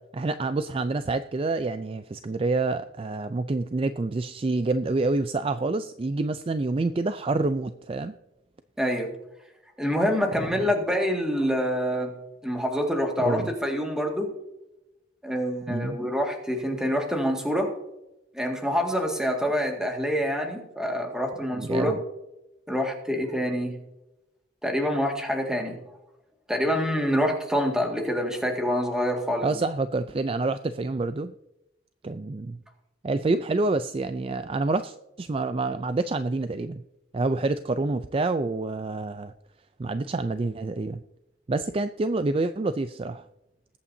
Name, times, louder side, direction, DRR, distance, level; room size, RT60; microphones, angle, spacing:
voice 1, 0.0-8.1 10.3-10.6 13.2-13.5 15.7-16.0 21.5-22.0 29.4-31.3 32.0-32.6 33.0-36.8 37.1-39.3 39.8-41.0 41.5-43.3, right 3 dB, 30° right, 11 dB, 0.4 m, -27 dB
voice 2, 8.8-9.1 9.8-12.1 12.4-14.3 15.2-17.7 18.3-21.9 22.7-23.8 24.6-25.8 26.5-29.5, equal, 5° right, 2 dB, 1.9 m, -26 dB
21.0 x 8.6 x 2.7 m, 0.94 s
head